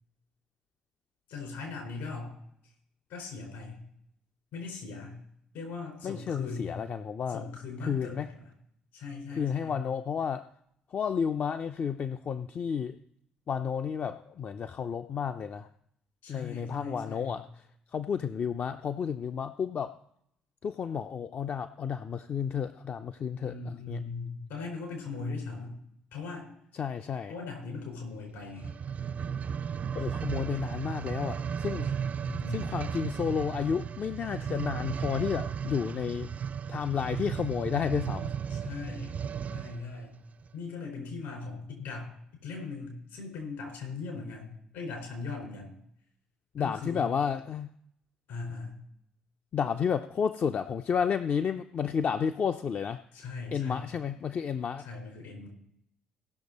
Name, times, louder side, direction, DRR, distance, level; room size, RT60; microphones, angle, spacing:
voice 1, 1.3-2.3 3.1-3.8 4.5-5.2 5.5-6.8 7.3-8.4 8.9-9.8 16.2-17.4 23.4-25.8 26.1-26.5 27.3-28.7 32.3-32.7 38.5-39.2 39.5-40.1 40.5-42.1 42.4-45.7 46.6-47.1 48.3-48.8 53.1-53.8 54.8-55.5, left 4 dB, 70° left, 1 dB, 4.5 m, -39 dB
voice 2, 6.0-7.4 7.8-8.3 9.4-10.4 10.9-13.0 13.5-15.7 16.3-17.5 17.9-20.0 20.6-23.5 23.9-24.0 26.7-27.3 29.9-31.9 32.5-36.3 36.7-38.3 46.5-47.7 49.5-53.0 53.5-54.9, left 7 dB, 45° left, 8 dB, 0.5 m, -31 dB
sound 1, 28.5-39.8 40.5-40.6, right 7 dB, 40° right, 0.4 m, -35 dB
17.5 x 6.4 x 4.1 m, 0.73 s
hypercardioid pair, 50°, 4 cm